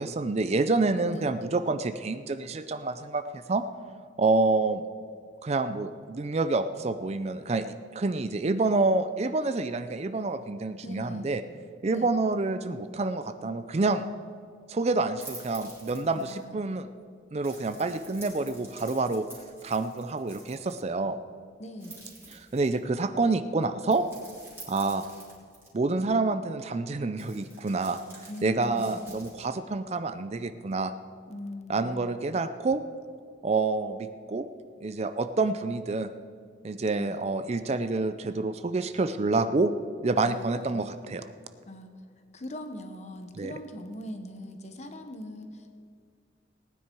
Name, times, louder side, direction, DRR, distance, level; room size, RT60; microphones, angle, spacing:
voice 1, 0.0-3.6 4.2-4.8 5.4-7.7 7.9-11.4 11.8-14.1 14.7-16.8 17.3-19.2 19.6-21.2 22.3-24.0 24.7-25.0 25.7-30.9 31.7-32.8 33.4-34.5 34.8-36.1 36.6-39.7 40.0-41.3 43.4-43.5, right 3 dB, 35° right, 11 dB, 0.4 m, -28 dB
voice 2, 10.8-11.4 11.9-12.1 16.1-16.6 21.6-22.0 28.3-29.0 31.3-32.0 36.9-37.2 40.2-40.9 41.7-41.9 42.3-45.7, left 1 dB, 40° left, 7 dB, 1.1 m, -41 dB
sound 1, 15.2-16.4 17.4-20.8 21.8-22.9 23.9-25.7 27.2-29.5, right 2 dB, 15° right, 3.2 m, -48 dB
18.5 x 9.6 x 4.6 m, 2.1 s
head